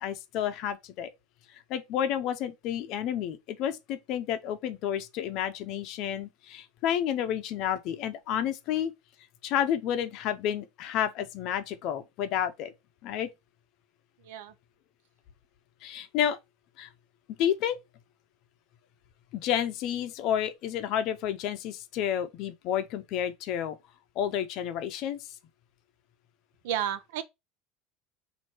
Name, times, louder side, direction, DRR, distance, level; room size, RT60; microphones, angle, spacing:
voice 1, 0.0-1.1 1.7-8.9 9.4-12.7 13.0-13.3 15.8-16.4 16.8-16.9 17.4-17.8 19.3-23.8 24.2-25.2, left 10 dB, 45° left, 0.6 m, -30 dB
voice 2, 26.6-27.2, right 10 dB, 80° right, 0.6 m, -32 dB
4.5 x 2.6 x 4.5 m
cardioid pair, 175°, 0 cm